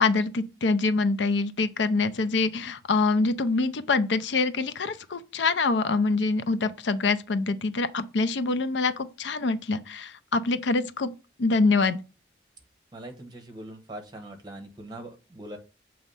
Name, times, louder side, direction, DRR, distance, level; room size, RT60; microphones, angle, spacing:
voice 1, 0.0-11.1 11.4-12.0, left 3 dB, 85° left, 0.6 m, -25 dB
voice 2, 12.9-15.6, right 1 dB, 25° right, 1.1 m, -41 dB
7.1 x 3.1 x 5.4 m
head